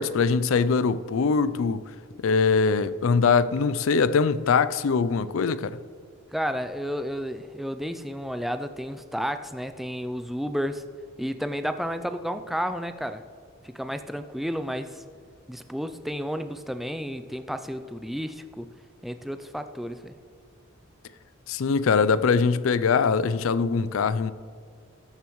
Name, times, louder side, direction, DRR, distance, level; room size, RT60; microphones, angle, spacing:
voice 1, 0.0-1.8 2.2-5.8 21.5-24.3, left 5 dB, 65° left, 0.4 m, -22 dB
voice 2, 6.3-10.8 11.2-13.2 13.6-15.0 15.5-18.7 19.0-20.1, equal, ahead, 0.3 m, -32 dB
14.0 x 10.5 x 3.1 m
head